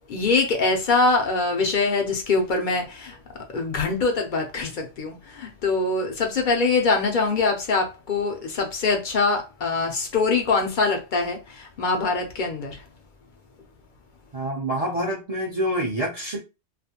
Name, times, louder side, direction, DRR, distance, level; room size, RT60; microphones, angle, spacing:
voice 1, 0.1-3.2 3.5-12.8, left 3 dB, 50° left, 0.6 m, -23 dB
voice 2, 14.3-16.4, right 1 dB, 40° right, 0.5 m, -27 dB
2.4 x 2.2 x 2.8 m
omnidirectional pair, 1.3 m